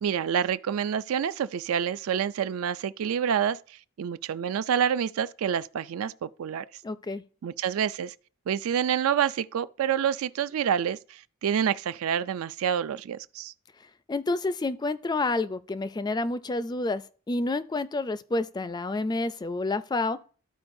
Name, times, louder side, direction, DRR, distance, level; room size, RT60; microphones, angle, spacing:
voice 1, 0.0-3.6 4.0-6.7 7.4-8.1 8.5-13.5, right 8 dB, 75° right, 0.3 m, -27 dB
voice 2, 6.8-7.2 14.1-20.2, left 2 dB, 20° left, 0.3 m, -29 dB
13.5 x 4.5 x 2.6 m
head